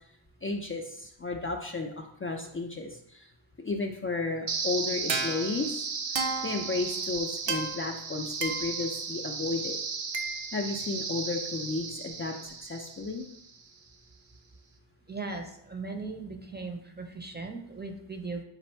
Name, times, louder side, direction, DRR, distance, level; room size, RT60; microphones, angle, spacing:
voice 1, 0.4-3.3 3.6-5.9 6.4-9.8 10.5-13.2, left 3 dB, 30° left, 2 dB, 0.4 m, -33 dB
sound 1, 4.5-13.5, right 4 dB, 65° right, 0.7 m, -34 dB
voice 2, 15.1-18.4, right 3 dB, 20° right, 3 dB, 0.6 m, -38 dB
4.1 x 2.6 x 4.4 m, 0.73 s
cardioid pair, 45°, 47 cm